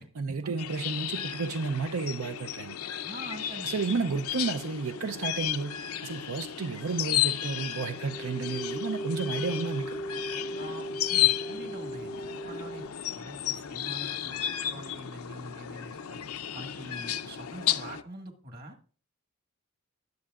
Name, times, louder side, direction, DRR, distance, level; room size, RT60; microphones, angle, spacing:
voice 1, 0.2-2.8 3.6-10.0, right 4 dB, 80° right, 0.6 m, -32 dB
sound 1, 0.6-18.0, left 12 dB, 90° left, 0.6 m, -33 dB
voice 2, 3.1-3.7 4.0-4.1 10.6-12.8 13.2-16.2 16.5-18.8, right 1 dB, 45° right, 1.7 m, -44 dB
sound 2, 7.9-12.9, right 1 dB, 10° left, 0.6 m, -37 dB
20.0 x 7.6 x 2.4 m
head